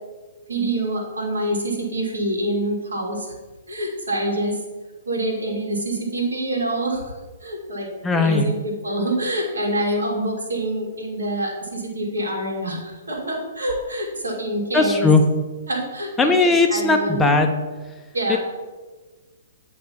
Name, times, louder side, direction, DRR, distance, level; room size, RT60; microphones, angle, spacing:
voice 1, 0.5-3.3 3.7-4.6 5.1-7.0 7.4-15.1 15.7-17.4 18.1-18.4, right 1 dB, 75° right, 0 dB, 1.9 m, -26 dB
voice 2, 8.0-8.5 14.7-15.2 16.2-17.6 18.3-18.4, left 3 dB, 10° left, 2 dB, 0.7 m, -18 dB
8.6 x 3.2 x 5.8 m, 1.3 s
figure-of-eight pair, 120°, 0 cm